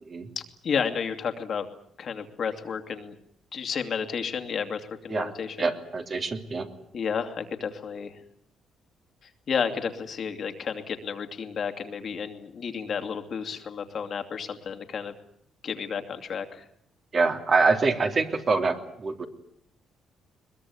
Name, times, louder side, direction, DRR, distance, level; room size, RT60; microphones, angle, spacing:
voice 1, 0.4-1.7 2.0-3.1 3.5-5.7 6.9-8.2 9.5-15.1 15.6-16.6, left 6 dB, 55° left, 6 dB, 2.6 m, -32 dB
voice 2, 5.6-6.7 17.1-19.2, right 4 dB, 40° right, 5 dB, 3.1 m, -25 dB
22.0 x 21.5 x 9.6 m, 0.70 s
cardioid pair, 90°, 0 cm